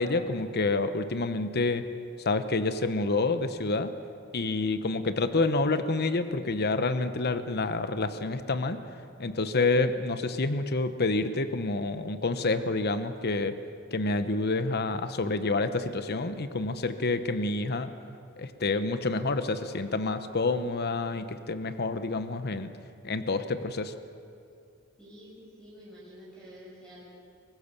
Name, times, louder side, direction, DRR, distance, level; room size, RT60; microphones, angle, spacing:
voice 1, 0.0-1.8 2.3-3.9 4.3-8.8 9.2-13.5 13.9-17.9 18.4-22.7 23.0-23.9, left 3 dB, 50° left, 10 dB, 1.0 m, -28 dB
voice 2, 25.0-27.1, equal, 5° left, -8 dB, 5.8 m, -49 dB
24.0 x 19.0 x 6.8 m, 2.5 s
head